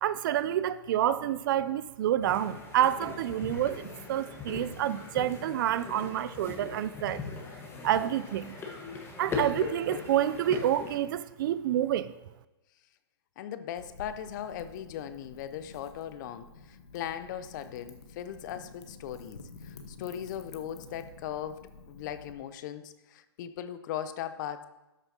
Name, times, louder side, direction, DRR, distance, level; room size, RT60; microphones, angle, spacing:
voice 1, 0.0-7.2 7.8-8.6 9.2-12.1, right 11 dB, 50° right, 0.4 m, -28 dB
sound 1, 2.2-11.0, left 4 dB, 15° left, 1.3 m, -40 dB
voice 2, 13.4-24.6, left 10 dB, 45° left, 0.6 m, -39 dB
Wind / Fire, 13.8-22.3, left 4 dB, 85° left, 1.2 m, -50 dB
12.5 x 6.6 x 2.8 m
hypercardioid pair, 135°, 14 cm